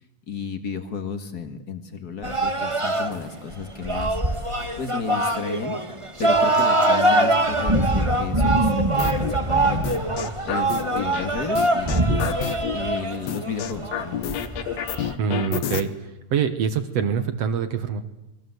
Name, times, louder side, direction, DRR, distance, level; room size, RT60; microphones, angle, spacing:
voice 1, 0.3-4.2 4.8-5.8 6.2-14.2, left 5 dB, 35° left, 8 dB, 1.8 m, -33 dB
sound 1, 2.2-15.1, right 1 dB, 25° right, 0.6 m, -23 dB
sound 2, 9.0-9.3 9.8-11.3 11.5-12.8 13.3-15.8, left 9 dB, 60° left, 2.0 m, -29 dB
voice 2, 15.2-18.1, right 7 dB, 60° right, 11 dB, 1.9 m, -25 dB
27.0 x 21.5 x 8.0 m, 1.0 s
omnidirectional pair, 4.0 m